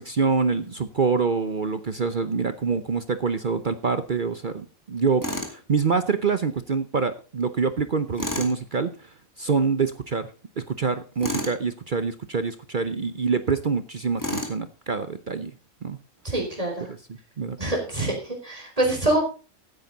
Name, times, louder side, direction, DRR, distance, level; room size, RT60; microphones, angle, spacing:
voice 1, 0.0-9.1 9.4-10.3 10.6-15.5 15.8-16.0 17.4-17.6, right 5 dB, 45° right, 11 dB, 0.8 m, -25 dB
Tools, 5.2-5.6 8.2-8.6 11.2-11.6 14.2-14.6, left 1 dB, 15° left, 2.3 m, -30 dB
voice 2, 16.2-16.9 17.6-19.2, right 2 dB, 25° right, 1 dB, 4.3 m, -25 dB
15.5 x 9.0 x 4.0 m, 0.35 s
omnidirectional pair, 1.4 m